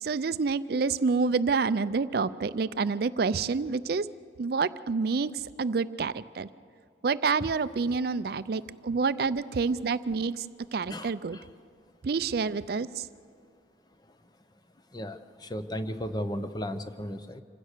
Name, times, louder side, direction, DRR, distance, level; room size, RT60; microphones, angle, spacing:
voice 1, 0.0-4.1 4.4-5.3 5.6-6.5 7.0-10.5 10.7-11.4 12.0-13.1, right 4 dB, 55° right, 15 dB, 0.4 m, -28 dB
voice 2, 10.9-11.5 14.9-17.4, equal, 20° left, 9 dB, 0.8 m, -35 dB
26.5 x 16.0 x 6.7 m, 2.4 s
head